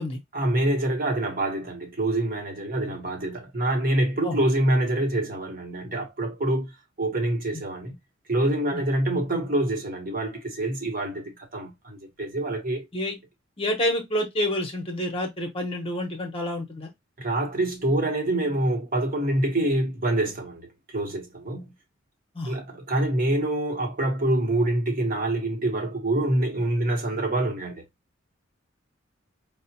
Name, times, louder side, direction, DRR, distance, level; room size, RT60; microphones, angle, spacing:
voice 1, 0.3-8.0 8.3-12.9 17.2-21.8 22.5-27.8, right 1 dB, 45° right, 0.9 m, -26 dB
voice 2, 13.6-16.9 22.3-22.6, left 1 dB, 25° left, 0.8 m, -28 dB
4.8 x 2.0 x 2.7 m
head